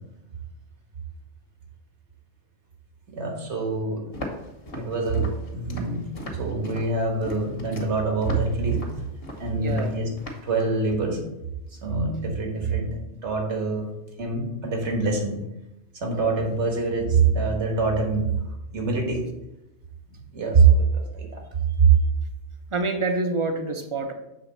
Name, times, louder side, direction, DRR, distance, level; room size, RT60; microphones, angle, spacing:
voice 1, 3.1-4.0 4.8-6.0 6.3-8.9 9.4-10.1 10.4-11.2 11.7-13.9 14.2-15.4 15.9-18.4 18.7-19.3 20.3-21.4 21.8-21.9, right 4 dB, 70° right, 1 dB, 1.7 m, -24 dB
Walk footsteps, 4.1-10.5, left 1 dB, 50° left, 1.4 m, -38 dB
voice 2, 9.5-9.9 22.7-24.1, right 3 dB, 30° right, 5 dB, 0.7 m, -27 dB
7.7 x 3.5 x 5.5 m, 0.91 s
omnidirectional pair, 1.3 m